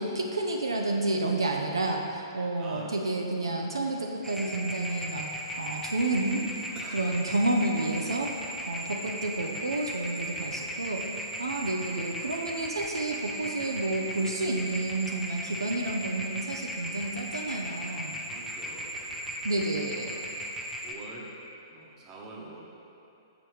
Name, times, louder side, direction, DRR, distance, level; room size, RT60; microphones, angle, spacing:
voice 1, 0.0-6.5 6.9-8.3 8.7-18.2 19.4-20.2, right 2 dB, 80° right, 1 dB, 0.5 m, -30 dB
voice 2, 1.8-2.3 2.6-3.2 3.5-3.6 4.2-4.3 6.7-7.0 7.4-7.5 10.3-10.6 14.3-14.6 18.3-19.5 19.9-20.5 20.8-21.3 21.7-22.6, right 3 dB, 25° right, -3 dB, 1.0 m, -48 dB
sound 1, 4.2-20.9, equal, 5° right, 0.5 m, -37 dB
6.9 x 5.4 x 3.1 m, 2.8 s
figure-of-eight pair, 115°, 2 cm